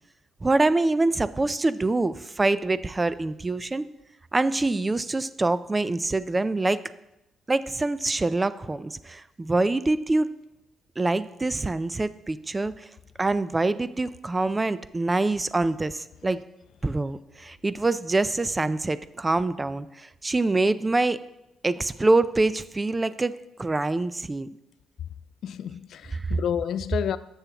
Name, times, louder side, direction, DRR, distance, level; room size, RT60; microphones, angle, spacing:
voice 1, 0.4-3.8 4.3-6.8 7.5-10.3 11.0-12.9 13.2-16.4 16.8-21.2 21.6-24.5 26.1-26.3, right 2 dB, 20° right, 0.4 m, -25 dB
voice 2, 25.4-27.2, left 9 dB, 70° left, 0.3 m, -30 dB
12.5 x 7.1 x 2.9 m
cardioid pair, 90°, 0 cm